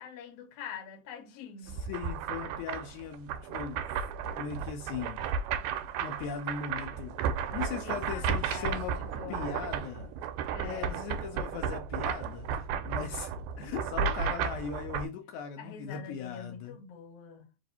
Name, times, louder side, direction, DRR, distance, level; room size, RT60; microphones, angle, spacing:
voice 1, 0.0-1.8 7.5-8.7 9.0-9.6 9.9-10.1 10.5-11.0 15.6-17.5, left 7 dB, 65° left, 1.7 m, -45 dB
voice 2, 1.6-5.3 6.0-7.2 7.5-9.0 9.3-10.1 10.6-16.8, left 7 dB, 80° left, 1.9 m, -39 dB
sound 1, 1.7-15.1, right 7 dB, 85° right, 2.0 m, -34 dB
4.7 x 2.5 x 4.0 m
omnidirectional pair, 3.6 m